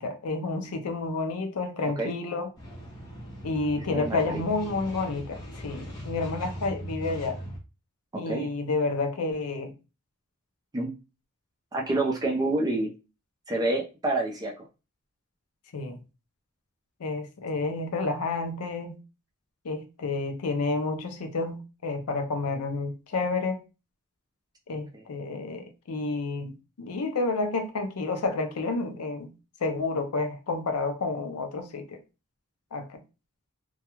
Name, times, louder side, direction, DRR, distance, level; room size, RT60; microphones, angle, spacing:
voice 1, 0.0-2.5 3.4-5.4 5.6-7.4 8.2-9.7 15.7-16.0 17.0-19.0 19.6-23.6 24.7-29.3 29.6-32.0 32.7-33.0, left 3 dB, 80° left, 0.5 m, -30 dB
sound 1, 2.6-7.6, equal, 15° left, 0.8 m, -40 dB
voice 2, 3.8-4.2 8.1-8.5 10.7-10.9 11.7-12.9 13.5-14.5 24.9-25.0, right 2 dB, 15° right, 0.5 m, -27 dB
2.3 x 2.2 x 2.9 m
head